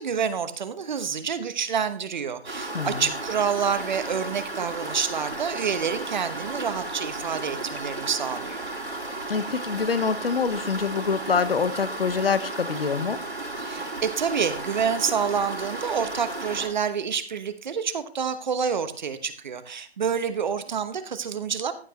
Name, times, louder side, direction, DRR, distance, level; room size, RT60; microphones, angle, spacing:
voice 1, 0.0-8.7 13.6-21.7, right 6 dB, 45° right, 11 dB, 1.1 m, -28 dB
sound 1, 2.4-16.7, right 2 dB, 80° right, 5.1 m, -34 dB
voice 2, 9.3-13.2, left 5 dB, 60° left, 13 dB, 1.1 m, -25 dB
14.5 x 8.7 x 3.0 m, 0.40 s
figure-of-eight pair, 145°, 32 cm